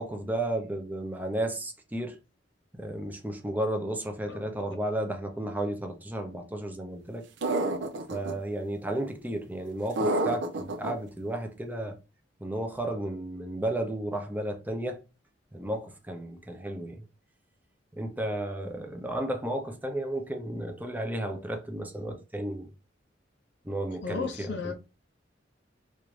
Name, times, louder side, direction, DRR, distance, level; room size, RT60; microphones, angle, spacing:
voice 1, 0.0-2.2 2.8-7.2 8.1-12.0 12.4-15.0 15.5-17.0 17.9-22.7 23.6-24.7, right 1 dB, 10° right, 0.5 m, -33 dB
sound 1, 7.4-8.3 10.0-10.9, right 2 dB, 75° right, 0.5 m, -28 dB
voice 2, 24.0-24.7, left 5 dB, 65° left, 0.5 m, -34 dB
3.2 x 2.5 x 3.1 m
head